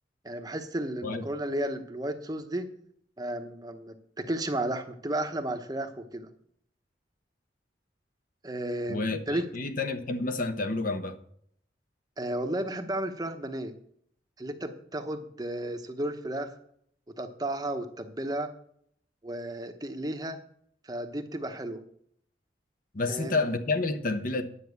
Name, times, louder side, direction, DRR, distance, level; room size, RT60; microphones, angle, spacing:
voice 1, 0.2-2.7 3.2-6.3 8.4-9.4 12.2-13.7 14.4-16.5 17.2-18.5 19.2-20.4 20.9-21.8 23.1-23.4, right 1 dB, 20° right, 0.9 m, -33 dB
voice 2, 8.9-11.2 22.9-24.4, left 3 dB, 50° left, 0.9 m, -29 dB
10.0 x 5.8 x 8.2 m
head